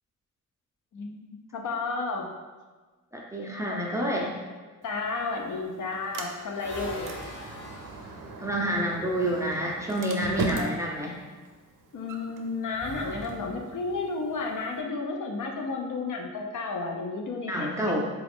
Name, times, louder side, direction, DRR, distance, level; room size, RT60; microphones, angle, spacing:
voice 1, 0.9-2.3 4.8-7.1 10.5-10.7 11.9-17.7, left 3 dB, 70° left, 2 dB, 0.6 m, -32 dB
voice 2, 3.1-4.4 8.4-11.1 17.5-18.1, equal, 10° right, -2 dB, 0.3 m, -28 dB
Sliding door, 4.8-14.8, right 2 dB, 80° right, 0.5 m, -39 dB
sound 1, 5.9-9.7 12.7-14.1, equal, 35° left, 0.8 m, -43 dB
3.9 x 2.3 x 3.5 m, 1.3 s
wide cardioid pair, 155°, 32 cm